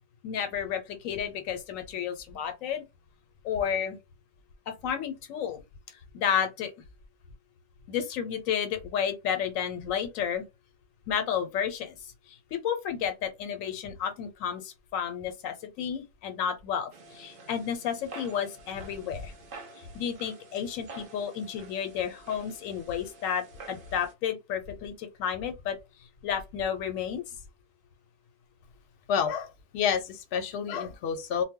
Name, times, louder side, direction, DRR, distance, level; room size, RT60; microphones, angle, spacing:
voice 1, 0.2-2.8 3.4-4.0 4.7-5.6 6.1-6.7 7.9-10.5 11.1-19.3 19.8-25.8 26.2-27.4, left 8 dB, 85° left, 1.0 m, -32 dB
sound 1, 16.9-24.1, right 2 dB, 60° right, 0.5 m, -48 dB
voice 2, 29.1-29.5 29.7-31.4, left 7 dB, 60° left, 0.8 m, -28 dB
2.2 x 2.0 x 3.6 m
omnidirectional pair, 1.3 m